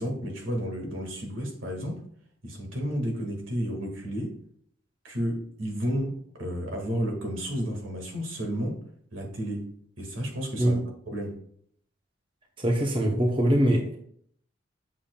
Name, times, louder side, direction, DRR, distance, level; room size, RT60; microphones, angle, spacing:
voice 1, 0.0-2.0 2.4-4.4 5.0-8.8 9.1-9.7 10.0-10.8 11.1-11.4, equal, 85° right, 1 dB, 1.9 m, -32 dB
voice 2, 12.6-14.0, equal, 25° right, 1 dB, 0.9 m, -23 dB
7.2 x 6.9 x 2.3 m, 0.65 s
head